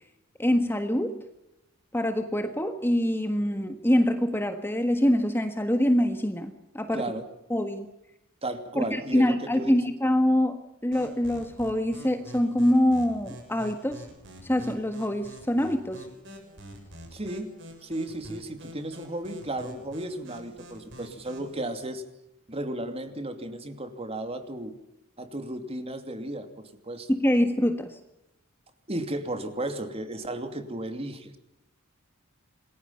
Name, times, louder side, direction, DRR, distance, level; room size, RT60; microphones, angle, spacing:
voice 1, 0.4-1.2 1.9-7.0 7.5-7.9 8.8-14.0 14.4-16.1 27.1-28.0, left 1 dB, 10° left, 7 dB, 1.5 m, -25 dB
voice 2, 6.9-7.3 8.4-9.7 17.1-17.5 17.8-22.0 22.5-24.7 25.2-27.1 28.9-31.4, right 1 dB, 30° right, 7 dB, 2.7 m, -34 dB
sound 1, 10.9-21.5, equal, 60° right, 7.6 m, -46 dB
28.0 x 21.0 x 5.7 m, 0.85 s
head